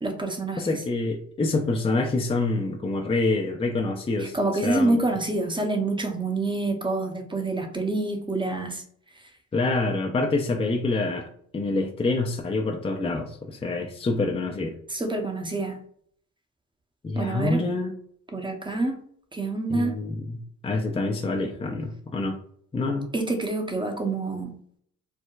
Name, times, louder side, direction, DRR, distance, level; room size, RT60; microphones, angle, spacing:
voice 1, 0.0-0.8 4.2-8.8 14.9-15.8 17.1-17.6 18.3-19.0 19.3-19.9 23.1-24.5, right 2 dB, 15° right, 4 dB, 0.7 m, -27 dB
voice 2, 0.6-4.4 4.6-5.0 9.5-11.3 11.5-14.7 17.0-17.9 19.7-22.4 22.7-23.1, left 3 dB, 15° left, 1 dB, 0.5 m, -26 dB
4.5 x 2.1 x 2.3 m, 0.63 s
hypercardioid pair, 55°, 36 cm